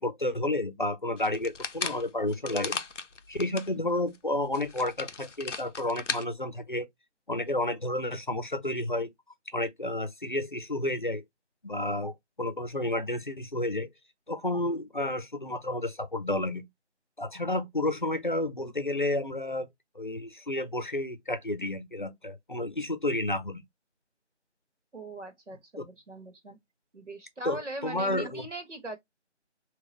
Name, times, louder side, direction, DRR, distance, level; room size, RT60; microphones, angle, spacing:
voice 1, 0.0-2.8 3.3-6.9 7.3-9.1 9.5-11.2 11.6-12.1 12.4-13.9 14.3-16.6 17.2-19.7 20.0-23.6 25.8-25.9 27.4-28.4, left 1 dB, 45° left, 0.6 m, -31 dB
sound 1, 1.2-3.7 4.1-4.2 4.5-6.2, left 4 dB, 90° left, 0.7 m, -36 dB
voice 2, 24.9-26.6 26.9-29.0, right 2 dB, 80° right, 1.7 m, -40 dB
3.5 x 3.0 x 3.0 m
figure-of-eight pair, 165°, 36 cm